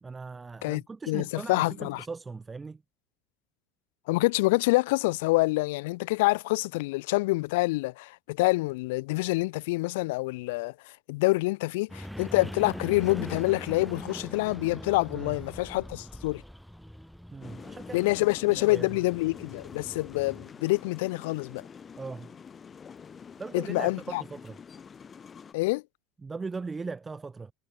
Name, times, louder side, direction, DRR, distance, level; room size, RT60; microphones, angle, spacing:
voice 1, 0.0-2.8 15.1-15.3 17.3-18.1 18.5-18.9 22.0-22.3 23.4-24.6 26.2-27.5, right 4 dB, 15° right, 1.2 m, -39 dB
voice 2, 0.6-2.0 4.1-10.7 11.1-16.4 17.9-21.6 23.5-24.2 25.5-25.8, left 22 dB, 85° left, 1.7 m, -26 dB
sound 1, 11.9-20.5, equal, ahead, 2.5 m, -42 dB
sound 2, 17.4-25.5, left 6 dB, 20° left, 2.4 m, -47 dB
cardioid pair, 145°, 0 cm